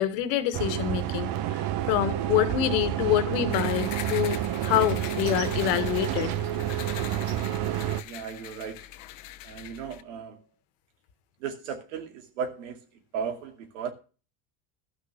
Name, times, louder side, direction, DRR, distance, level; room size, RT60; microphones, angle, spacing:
voice 1, 0.0-6.4, left 13 dB, 75° left, 1.7 m, -26 dB
sound 1, 0.5-8.0, right 12 dB, 65° right, 1.2 m, -29 dB
sound 2, 3.5-10.0, left 13 dB, 90° left, 1.1 m, -42 dB
voice 2, 8.0-8.9 9.4-10.4 11.4-12.8 13.1-13.9, right 6 dB, 85° right, 2.5 m, -35 dB
12.5 x 6.4 x 6.6 m
supercardioid pair, 90°, 37 cm